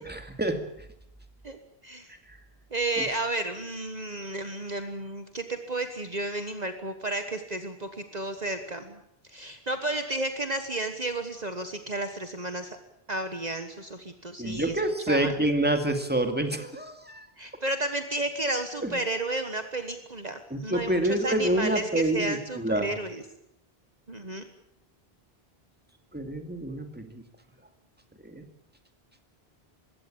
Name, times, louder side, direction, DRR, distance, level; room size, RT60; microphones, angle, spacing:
voice 1, 0.0-0.9 2.3-2.4 3.0-3.1 14.4-17.3 18.8-19.0 20.5-23.0 26.1-27.2 28.2-28.4, right 1 dB, 10° right, 6 dB, 2.3 m, -28 dB
voice 2, 2.7-9.0 9.3-12.8 13.1-14.7 15.1-15.3 17.4-23.2 24.1-24.5, right 2 dB, 45° right, 7 dB, 1.5 m, -32 dB
21.5 x 16.5 x 8.8 m, 0.78 s
omnidirectional pair, 1.0 m